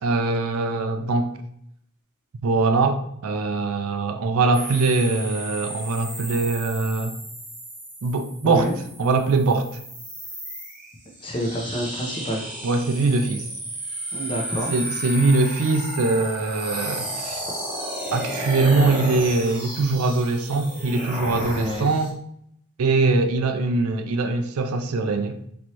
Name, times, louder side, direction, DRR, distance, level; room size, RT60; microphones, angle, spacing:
voice 1, 0.0-1.3 2.4-7.1 8.0-8.7 9.0-9.7 12.6-13.5 14.7-17.4 18.1-22.2 22.8-25.4, right 3 dB, 70° right, 0.4 m, -22 dB
sound 1, 4.5-22.1, right 1 dB, 10° right, 1.4 m, -33 dB
voice 2, 8.4-8.8 11.2-12.5 14.1-14.7 21.5-21.9, equal, 25° left, 0.8 m, -28 dB
4.3 x 3.1 x 2.9 m
head